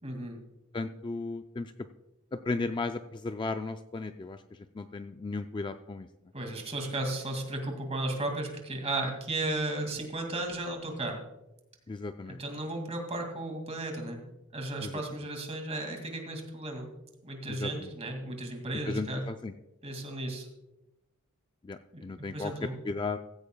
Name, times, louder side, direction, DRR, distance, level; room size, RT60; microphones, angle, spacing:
voice 1, 0.0-0.4 6.3-11.2 12.3-14.2 14.5-16.9 17.2-19.2 19.8-20.5 21.9-22.0 22.3-22.8, right 2 dB, 30° right, 4 dB, 2.2 m, -34 dB
voice 2, 0.7-1.7 2.5-4.4 4.8-6.1 11.9-12.4 17.6-17.7 18.9-19.5 21.6-22.5 22.9-23.2, left 3 dB, 20° left, 8 dB, 0.4 m, -35 dB
15.5 x 15.5 x 2.3 m, 0.94 s
head